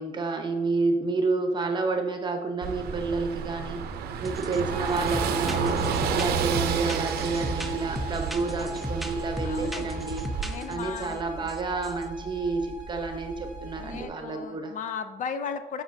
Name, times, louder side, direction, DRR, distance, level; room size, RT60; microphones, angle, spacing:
voice 1, 0.0-3.8 4.2-5.8 6.1-10.2 10.7-14.7, right 3 dB, 25° right, 4 dB, 0.9 m, -29 dB
Car passing by / Engine, 2.6-10.5, right 6 dB, 70° right, 0.6 m, -31 dB
sound 1, 4.2-4.6 4.9-11.1 11.5-12.0, right 1 dB, ahead, 0.5 m, -36 dB
sound 2, 4.7-14.1, right 2 dB, 90° left, 1.8 m, -38 dB
voice 2, 9.4-10.1 10.4-11.5 13.8-15.8, left 6 dB, 50° left, 9 dB, 0.5 m, -36 dB
7.3 x 6.1 x 2.7 m, 1.2 s
cardioid pair, 110°, 17 cm